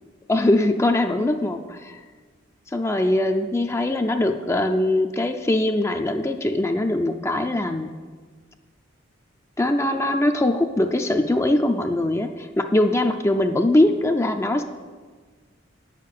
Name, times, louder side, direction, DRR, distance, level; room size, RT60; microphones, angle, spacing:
voice 1, 0.3-2.0 2.7-7.9 9.6-14.6, left 1 dB, 15° left, 5 dB, 0.4 m, -22 dB
9.0 x 6.6 x 8.4 m, 1.5 s
head